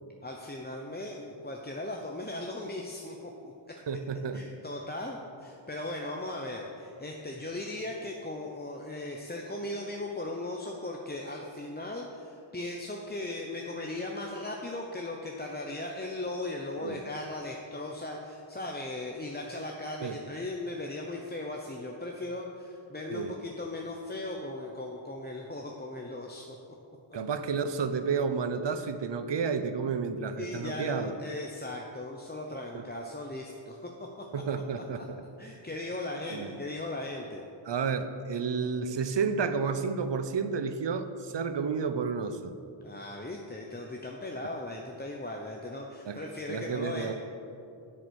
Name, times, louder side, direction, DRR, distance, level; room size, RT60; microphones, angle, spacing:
voice 1, 0.2-3.5 4.3-26.6 30.3-34.2 35.0-35.1 35.4-37.4 42.8-47.1, left 2 dB, 20° left, 0 dB, 0.8 m, -38 dB
voice 2, 3.9-4.4 16.8-17.0 20.0-20.2 23.1-23.3 27.1-31.1 32.5-32.8 34.3-35.0 36.3-36.6 37.7-42.5 46.0-46.2 46.5-47.1, right 5 dB, 60° right, 10 dB, 0.7 m, -31 dB
8.1 x 7.7 x 6.4 m, 2.6 s
wide cardioid pair, 70°, 49 cm